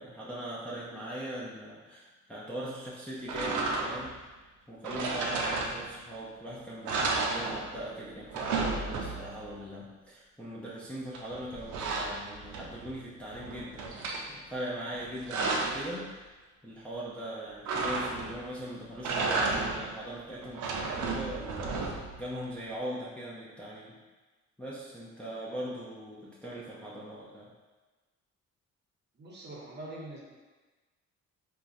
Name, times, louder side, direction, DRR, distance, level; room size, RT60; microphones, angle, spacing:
voice 1, 0.0-4.3 4.7-16.2 16.6-24.0 24.6-27.5, right 1 dB, 5° left, -7 dB, 0.5 m, -40 dB
sound 1, 3.3-4.2 4.8-6.1 6.5-6.6 6.8-7.9 8.2-9.4 11.1-12.9 13.3-14.2 14.9-15.9 17.7-18.5 18.9-19.9 20.4-22.2, right 3 dB, 80° right, 0.5 m, -32 dB
voice 2, 29.1-30.2, right 1 dB, 35° right, -4 dB, 0.8 m, -43 dB
3.6 x 2.2 x 2.5 m, 1.3 s
cardioid pair, 90°, 30 cm